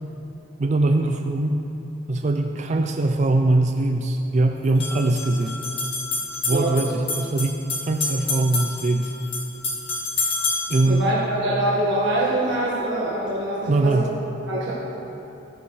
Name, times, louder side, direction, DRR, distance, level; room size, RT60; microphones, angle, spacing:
voice 1, 0.6-1.6 2.1-5.6 6.5-9.1 10.7-11.1 13.7-14.1, right 2 dB, 40° right, 4 dB, 0.4 m, -22 dB
sound 1, 4.6-10.9, left 3 dB, 70° left, 2.1 m, -28 dB
voice 2, 6.5-6.9 10.9-14.1 14.5-14.7, right 1 dB, 85° right, -7 dB, 1.5 m, -24 dB
14.0 x 8.7 x 3.1 m, 2.8 s
head